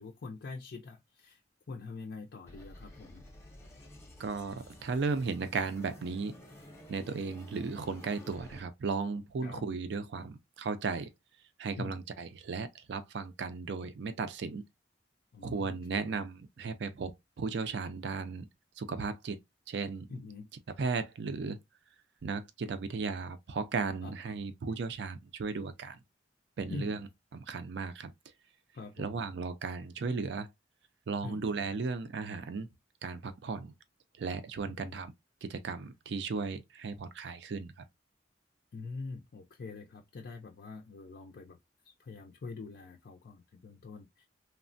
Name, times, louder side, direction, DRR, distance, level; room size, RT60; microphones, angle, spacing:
voice 1, 0.0-1.4 1.7-3.3 9.4-9.6 11.8-12.0 15.3-16.2 20.1-20.5 24.0-24.4 26.7-27.0 28.7-29.2 31.2-31.4 34.7-35.0 38.7-41.6 41.8-44.3, left 3 dB, 60° left, 0.4 m, -44 dB
sound 1, 2.5-8.6, left 1 dB, 15° left, 0.6 m, -52 dB
voice 2, 4.2-6.3 6.9-11.1 11.6-14.6 15.4-18.5 18.8-19.4 19.7-20.1 20.8-21.6 22.2-26.0 26.6-27.0 27.3-28.1 29.0-30.5 31.1-32.7 33.0-33.7 34.2-35.1 35.4-37.7, right 4 dB, 65° right, 0.4 m, -35 dB
3.2 x 2.1 x 2.4 m
head